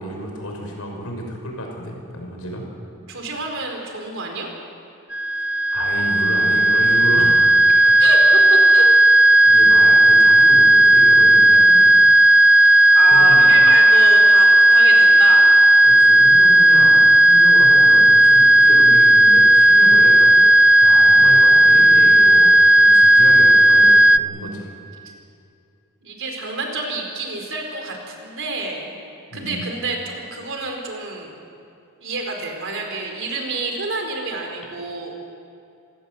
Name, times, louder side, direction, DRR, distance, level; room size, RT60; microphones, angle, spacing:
voice 1, 0.0-2.6 5.4-7.5 9.4-11.9 13.1-13.5 15.8-20.3 20.8-24.7 29.3-29.6, equal, 75° left, 1 dB, 5.9 m, -31 dB
voice 2, 3.1-4.5 7.8-8.2 8.5-8.9 11.5-11.6 12.6-12.7 12.9-15.4 26.0-29.0 29.3-31.3 32.0-35.1, right 3 dB, 60° right, 2 dB, 4.4 m, -28 dB
sound 1, 5.1-24.2, right 1 dB, 5° right, 0.4 m, -12 dB
28.0 x 16.0 x 8.0 m, 2.6 s
head